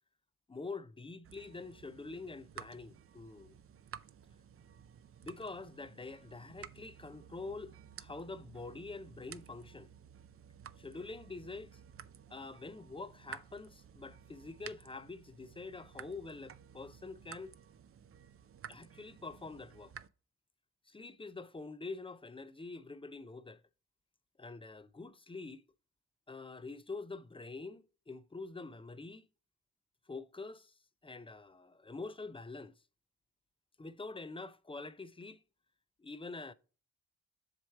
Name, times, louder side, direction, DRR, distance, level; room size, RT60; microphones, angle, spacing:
voice 1, 0.5-3.5 5.2-9.9 10.8-11.8 12.3-17.5 18.7-19.9 20.9-23.6 24.4-25.6 26.3-29.3 30.1-30.7 31.0-32.7 33.8-35.4 36.0-36.5, left 3 dB, 15° left, 0.5 m, -46 dB
sound 1, 1.2-20.1, right 9 dB, 40° right, 0.5 m, -54 dB
7.4 x 3.2 x 4.6 m
cardioid pair, 60°, 35 cm